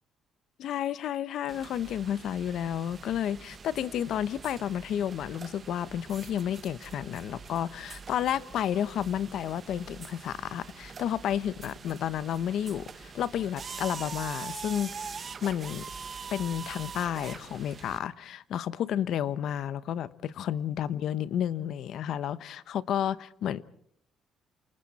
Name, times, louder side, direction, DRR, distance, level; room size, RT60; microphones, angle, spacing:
voice 1, 0.6-15.9 16.3-23.6, left 10 dB, 65° left, 1.0 m, -31 dB
sound 1, 1.5-18.0, right 5 dB, 35° right, 1.1 m, -44 dB
29.0 x 27.5 x 4.3 m
cardioid pair, 110°, 0 cm